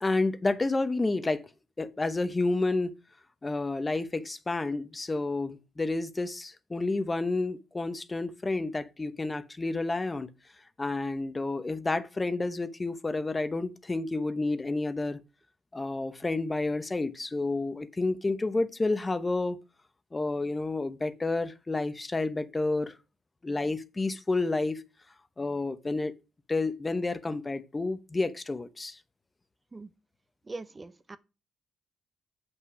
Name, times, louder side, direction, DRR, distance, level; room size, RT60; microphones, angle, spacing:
voice 1, 0.0-1.4 1.8-2.9 3.4-10.3 10.8-15.2 15.7-19.6 20.1-22.9 23.4-24.8 25.4-26.1 26.5-29.0, left 2 dB, 20° left, 0.9 m, -30 dB
voice 2, 30.5-31.2, right 3 dB, 25° right, 0.7 m, -41 dB
7.9 x 5.9 x 4.8 m
cardioid pair, 90°, 0 cm